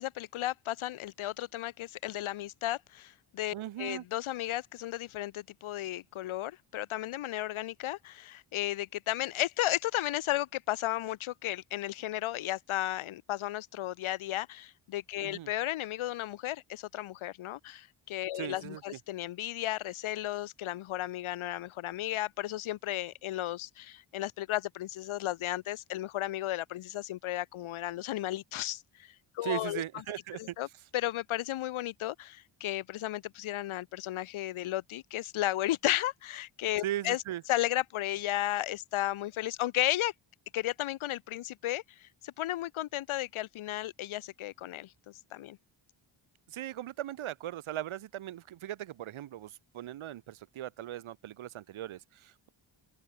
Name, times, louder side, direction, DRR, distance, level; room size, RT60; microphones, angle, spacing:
voice 1, 0.0-29.8 30.4-30.7 30.9-37.2 37.5-40.1 40.5-45.6, left 14 dB, 80° left, 0.6 m, -34 dB
voice 2, 3.5-4.0 15.2-15.5 18.3-19.0 29.4-30.6 36.8-37.4 46.5-52.5, right 12 dB, 75° right, 0.8 m, -39 dB
open air
cardioid pair, 85°, 48 cm